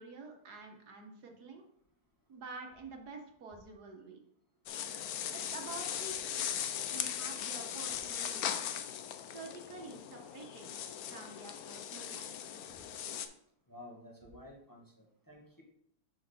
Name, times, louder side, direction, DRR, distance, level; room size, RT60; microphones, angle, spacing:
voice 1, 0.0-1.6 2.3-4.2 5.3-6.4 6.9-8.7 9.3-12.6, right 3 dB, 70° right, 2 dB, 1.7 m, -49 dB
sound 1, 4.7-13.3, left 9 dB, 70° left, 1.1 m, -39 dB
voice 2, 13.7-15.6, left 1 dB, 15° left, -2 dB, 1.3 m, -53 dB
6.0 x 5.7 x 4.2 m, 0.69 s
omnidirectional pair, 1.8 m